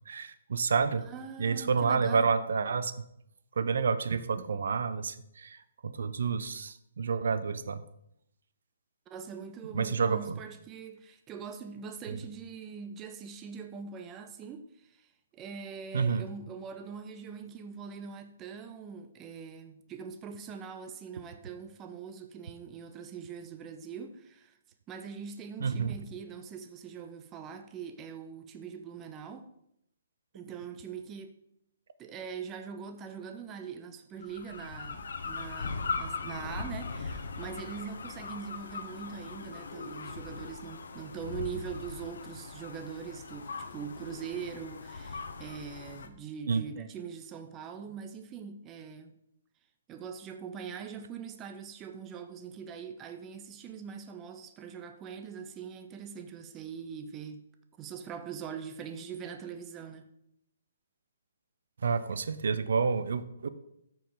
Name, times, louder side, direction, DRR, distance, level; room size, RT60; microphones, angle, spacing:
voice 1, 0.1-1.0 1.4-2.9 3.6-5.6 5.8-7.8 9.7-10.4 12.1-12.2 15.9-16.3 25.6-26.0 46.5-46.6 61.8-63.5, right 5 dB, 65° right, 0.6 m, -29 dB
voice 2, 1.0-2.3 9.1-24.6 24.9-29.5 30.3-31.4 32.0-49.1 49.9-57.4 57.7-60.1, right 6 dB, 15° right, 0.5 m, -42 dB
sound 1, 34.2-46.1, left 4 dB, 70° left, 0.9 m, -40 dB
13.5 x 4.6 x 3.9 m
hypercardioid pair, 170°, 0 cm